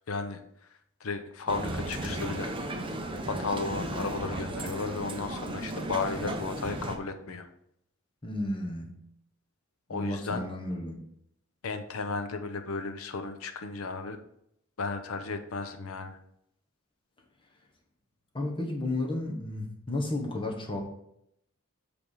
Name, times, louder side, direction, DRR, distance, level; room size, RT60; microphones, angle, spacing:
voice 1, 0.1-0.4 1.0-2.5 3.2-7.5 9.9-10.4 11.6-14.2 14.8-16.2, left 4 dB, 70° left, 8 dB, 0.7 m, -34 dB
Male speech man speaking, 1.5-7.0, right 1 dB, 25° right, 0.7 m, -35 dB
voice 2, 8.2-9.0 9.9-11.0 18.3-20.8, left 2 dB, 25° left, 1 dB, 1.2 m, -33 dB
7.9 x 3.5 x 4.8 m, 0.75 s
head